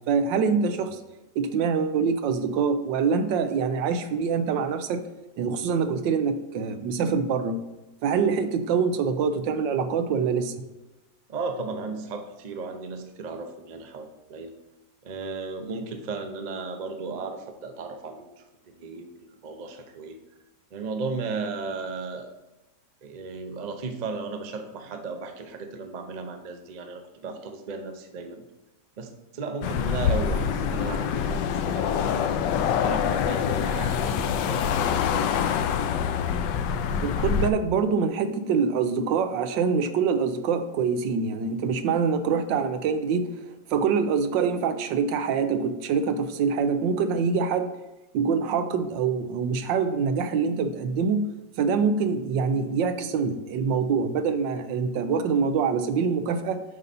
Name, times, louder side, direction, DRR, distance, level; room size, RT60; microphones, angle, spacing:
voice 1, 0.1-1.0 1.3-5.0 5.4-7.6 8.0-10.6 37.0-43.3 43.7-47.7 48.1-56.6, right 5 dB, 90° right, 9 dB, 1.4 m, -25 dB
voice 2, 11.3-14.5 15.0-20.2 20.7-22.3 23.0-28.4 29.0-32.3 32.8-35.4, right 4 dB, 50° right, 5 dB, 0.5 m, -35 dB
sound 1, 29.6-37.5, left 7 dB, 80° left, 1.2 m, -25 dB
7.9 x 5.3 x 4.2 m, 1.0 s
omnidirectional pair, 1.9 m